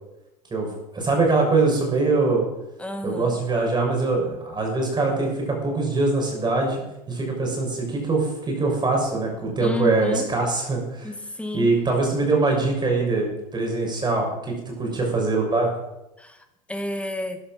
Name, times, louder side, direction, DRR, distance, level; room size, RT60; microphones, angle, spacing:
voice 1, 0.5-2.4 3.0-11.1 11.5-15.7, right 3 dB, 20° right, 0 dB, 6.5 m, -23 dB
voice 2, 2.8-3.4 9.6-10.3 11.0-11.7 16.2-17.4, left 1 dB, 5° left, 7 dB, 2.1 m, -31 dB
14.0 x 11.0 x 6.1 m, 0.93 s
hypercardioid pair, 85°, 20 cm